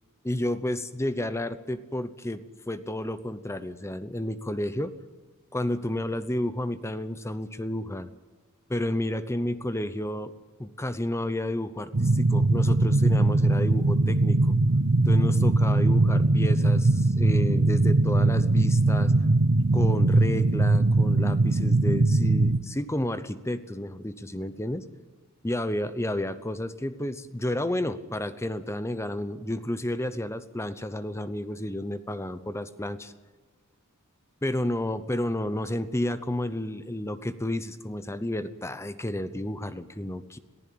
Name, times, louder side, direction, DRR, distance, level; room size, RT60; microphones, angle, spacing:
voice 1, 0.2-4.9 5.5-8.1 8.7-10.3 10.6-14.5 15.0-19.1 19.7-24.9 25.4-33.1 34.4-40.4, left 1 dB, 15° left, 12 dB, 0.8 m, -31 dB
sound 1, 11.9-22.6, right 2 dB, 60° right, 0.8 m, -21 dB
22.0 x 15.0 x 8.6 m, 1.4 s
head